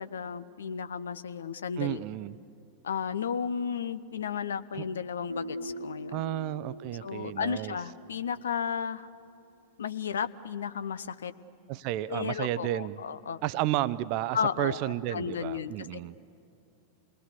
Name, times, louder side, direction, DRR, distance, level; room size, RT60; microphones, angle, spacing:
voice 1, 0.0-2.0 2.8-6.2 7.0-9.1 9.8-11.3 12.1-13.4 14.3-16.0, left 7 dB, 65° left, 13 dB, 0.7 m, -34 dB
voice 2, 1.8-2.4 4.7-4.8 6.1-7.8 11.7-13.0 13.4-16.1, right 14 dB, 45° right, 16 dB, 0.6 m, -32 dB
Guitar, 5.3-8.9, equal, 85° right, 1.1 m, -42 dB
28.0 x 20.5 x 6.7 m, 2.8 s
figure-of-eight pair, 90°, 0 cm